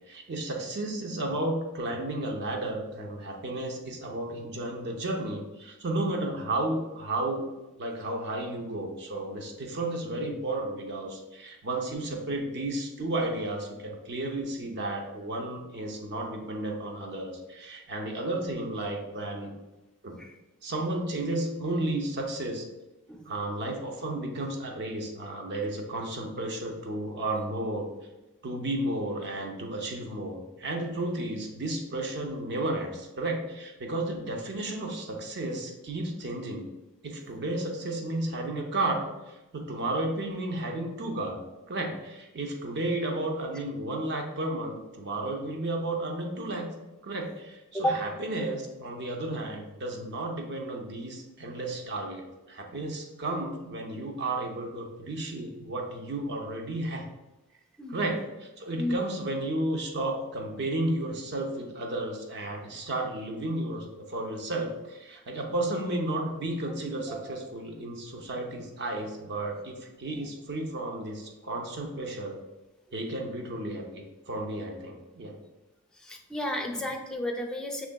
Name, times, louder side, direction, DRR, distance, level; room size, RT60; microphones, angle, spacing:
voice 1, 0.1-7.4 7.8-19.5 20.0-20.2 20.6-22.7 23.3-27.9 28.4-36.7 37.0-41.4 41.7-46.7 47.0-57.1 57.9-72.4 72.9-75.3, right 2 dB, 50° right, 2 dB, 0.6 m, -33 dB
voice 2, 57.8-58.1 58.8-59.0 67.1-67.2 76.0-77.9, equal, 5° left, 2 dB, 0.4 m, -32 dB
6.2 x 3.5 x 2.2 m, 1.0 s
head